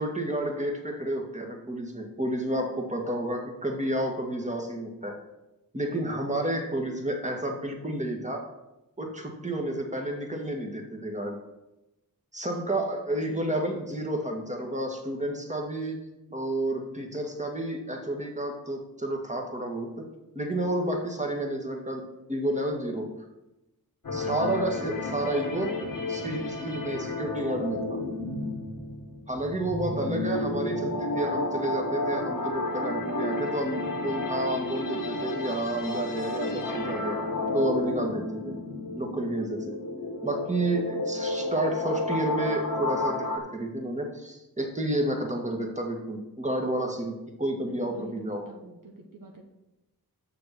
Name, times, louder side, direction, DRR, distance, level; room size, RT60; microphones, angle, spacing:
voice 1, 0.0-5.2 5.7-8.4 9.0-11.4 12.3-16.0 16.3-20.0 20.4-22.0 22.3-23.1 24.1-25.8 26.1-28.0 29.3-37.2 37.5-38.6 39.0-39.8 40.2-48.4, right 1 dB, 20° right, 1 dB, 1.9 m, -30 dB
voice 2, 13.1-13.6 21.2-21.3 29.8-30.3 32.7-33.7 47.7-49.4, right 3 dB, 60° right, 1 dB, 1.1 m, -48 dB
sound 1, 24.0-43.4, left 2 dB, 60° left, 1.4 m, -32 dB
6.8 x 6.8 x 6.1 m, 0.95 s
wide cardioid pair, 50°, 36 cm